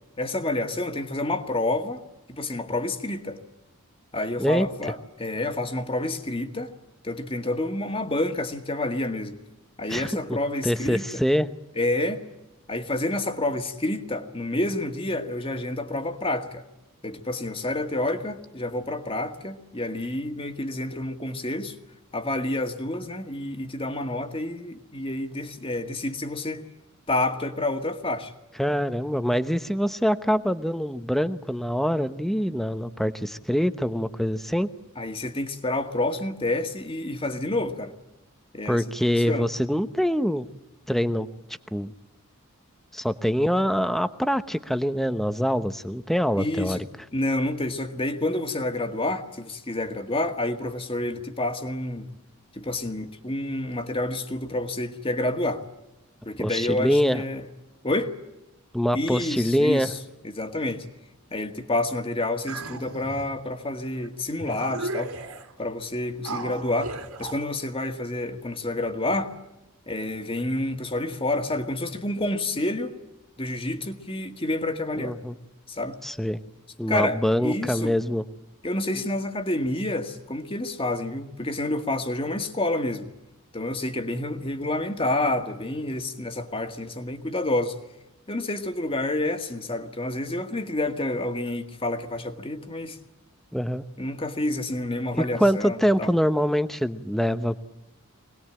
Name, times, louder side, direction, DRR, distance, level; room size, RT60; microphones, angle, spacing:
voice 1, 0.2-2.0 2.3-3.4 4.1-6.7 7.0-9.4 9.8-11.2 11.7-12.2 12.7-16.6 17.0-21.7 22.1-26.6 27.1-28.3 35.0-37.9 38.5-38.8 39.3-39.5 46.4-46.8 47.1-52.1 52.5-55.6 56.2-57.4 57.8-58.1 58.9-60.0 60.2-60.8 61.3-65.1 65.6-69.3 69.9-72.9 73.4-75.2 75.7-76.0 76.9-77.9 78.6-83.1 83.5-87.8 88.3-93.0 94.0-96.1, left 1 dB, 25° left, 1.8 m, -29 dB
voice 2, 9.9-10.4 10.6-11.5 28.6-34.7 38.6-40.5 40.9-41.3 41.7-41.9 42.9-46.8 56.4-57.2 58.7-59.9 75.0-75.4 76.0-76.4 76.8-78.2 93.5-93.8 95.2-97.6, equal, ahead, 0.9 m, -24 dB
sound 1, 62.5-63.3 64.0-64.1 64.4-65.5 66.2-67.4, right 2 dB, 90° right, 3.0 m, -35 dB
25.5 x 19.5 x 8.8 m
head